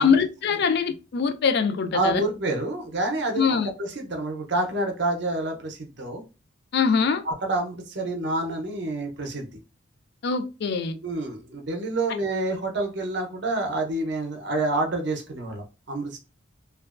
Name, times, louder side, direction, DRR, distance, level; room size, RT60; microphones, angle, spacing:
voice 1, 0.0-2.2 3.4-3.7 6.7-7.2 10.2-11.0, left 6 dB, 55° left, 0.3 m, -23 dB
voice 2, 1.9-3.4 3.8-6.2 7.3-9.5 11.0-16.2, right 2 dB, 55° right, 0.6 m, -28 dB
2.9 x 2.3 x 2.3 m
head